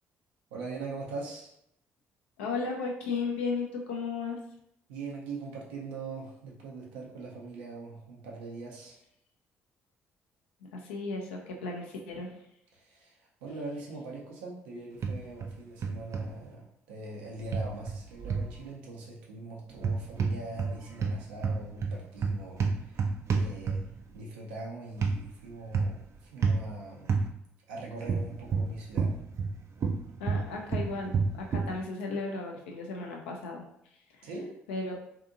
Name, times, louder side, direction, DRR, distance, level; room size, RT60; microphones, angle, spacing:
voice 1, 0.5-1.5 4.9-9.0 12.7-23.8 24.1-26.0 26.3-27.2 27.7-29.1 34.2-34.5, right 3 dB, 85° right, -3 dB, 0.7 m, -42 dB
voice 2, 2.4-4.4 10.7-12.3 30.2-33.6 34.2-34.3 34.7-35.0, left 4 dB, 85° left, 1 dB, 0.5 m, -35 dB
sound 1, 15.0-15.5 15.8-16.3 17.5-18.5 19.8-20.7 21.0-24.0 25.0-25.2 25.7-26.0 26.4-26.6 27.1-27.3 28.1-29.5 29.8-31.7, right 5 dB, 50° right, 0.4 m, -29 dB
2.7 x 2.5 x 2.5 m, 0.75 s
hypercardioid pair, 50°, 6 cm